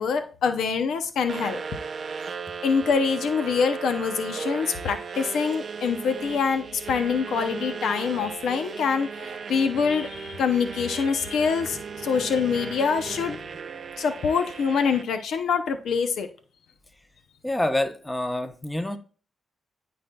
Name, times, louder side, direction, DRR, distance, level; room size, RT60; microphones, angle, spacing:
voice 1, 0.0-1.6 2.6-13.4 14.0-16.3, left 6 dB, 85° left, 0.6 m, -25 dB
sound 1, 1.3-15.0, right 5 dB, 55° right, 0.5 m, -36 dB
voice 2, 17.4-19.0, left 1 dB, 15° left, 0.9 m, -27 dB
12.5 x 4.2 x 2.3 m
cardioid pair, 75°, 0 cm